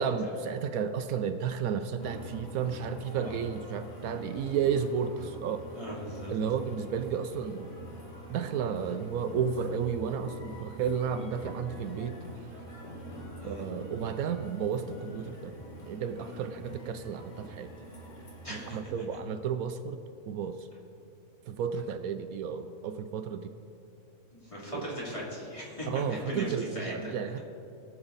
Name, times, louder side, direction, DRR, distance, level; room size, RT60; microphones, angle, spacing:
voice 1, 0.0-5.7 6.3-7.7 8.3-12.2 13.4-15.5 15.9-17.7 18.5-20.0 20.3-20.7 21.5-23.5 24.7-24.8 25.9-27.4, right 7 dB, 75° right, 9 dB, 1.0 m, -32 dB
sound 1, 2.0-18.8, right 1 dB, 55° left, 2.1 m, -45 dB
voice 2, 5.7-6.3 13.4-13.6 18.4-18.8 24.3-27.4, equal, 20° left, -6 dB, 2.9 m, -39 dB
20.5 x 7.0 x 4.0 m, 2.8 s
omnidirectional pair, 1.5 m